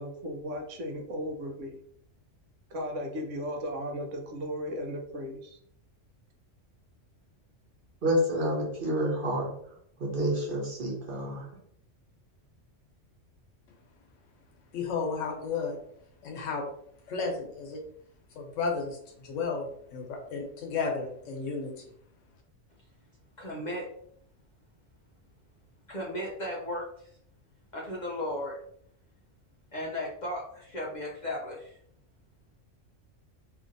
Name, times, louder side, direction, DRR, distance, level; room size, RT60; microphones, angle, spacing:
voice 1, 0.0-1.8 2.7-5.6, equal, 80° right, 3 dB, 1.0 m, -36 dB
voice 2, 8.0-9.5 10.0-11.5, equal, 50° right, -3 dB, 1.0 m, -28 dB
voice 3, 14.7-15.8 16.2-16.7 17.1-17.8 18.3-21.8, left 4 dB, 85° left, 1 dB, 1.1 m, -33 dB
voice 4, 23.4-23.9 25.9-26.9 27.7-28.6 29.7-31.8, left 1 dB, 55° left, -4 dB, 0.5 m, -35 dB
2.8 x 2.6 x 2.5 m, 0.67 s
omnidirectional pair, 1.3 m